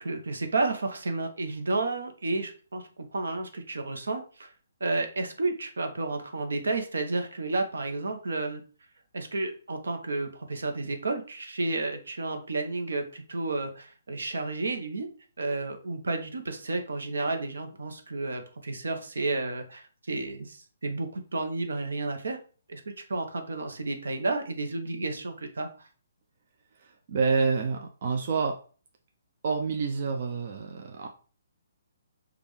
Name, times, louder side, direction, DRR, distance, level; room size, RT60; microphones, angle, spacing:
voice 1, 0.0-4.5 4.8-8.6 9.1-15.1 15.4-22.4 22.7-25.9, right 3 dB, 80° right, 5 dB, 0.8 m, -31 dB
voice 2, 26.8-28.6 29.4-31.1, right 5 dB, 50° right, 3 dB, 0.5 m, -28 dB
5.2 x 2.4 x 3.2 m, 0.39 s
hypercardioid pair, 145°, 0 cm